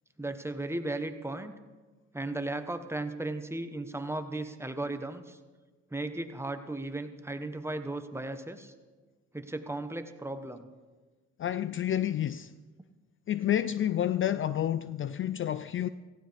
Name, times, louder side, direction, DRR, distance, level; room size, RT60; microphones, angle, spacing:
voice 1, 0.2-1.5 2.1-5.4 5.9-8.7 9.3-10.7, right 2 dB, 10° right, 1.0 m, -36 dB
voice 2, 11.4-12.5 13.3-15.9, left 11 dB, 45° left, 0.4 m, -29 dB
17.5 x 15.0 x 3.4 m
cardioid pair, 90°, 30 cm